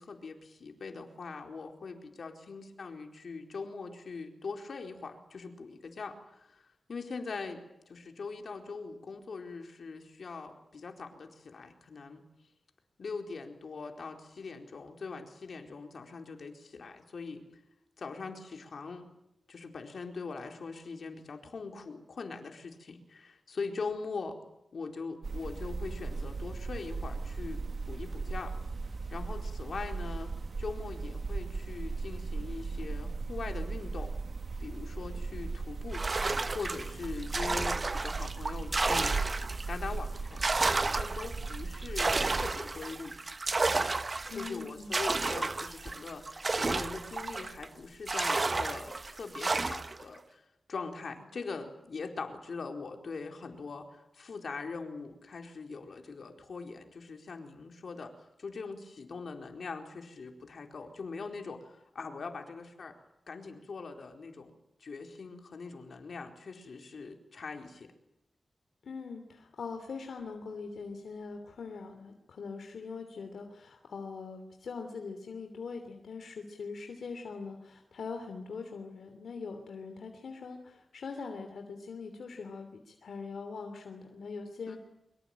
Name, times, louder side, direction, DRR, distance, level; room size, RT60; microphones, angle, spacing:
voice 1, 0.0-6.6 6.9-12.2 13.0-17.4 18.0-19.1 19.5-24.4 24.7-28.5 29.1-34.1 34.6-36.0 36.5-39.2 39.7-40.5 40.9-43.2 44.3-50.4 50.7-58.1 58.4-62.9 63.3-64.5 64.8-67.9 84.7-84.8, left 4 dB, 70° left, 4 dB, 4.4 m, -42 dB
sound 1, 25.2-42.5, right 4 dB, 60° right, 1.7 m, -37 dB
sound 2, 35.9-39.8 40.2-47.7 48.1-50.0, right 3 dB, 40° right, 1.3 m, -32 dB
voice 2, 44.3-45.0 68.8-84.8, left 4 dB, 85° left, 5 dB, 3.1 m, -42 dB
24.5 x 24.0 x 9.1 m, 0.85 s
wide cardioid pair, 75°, 0 cm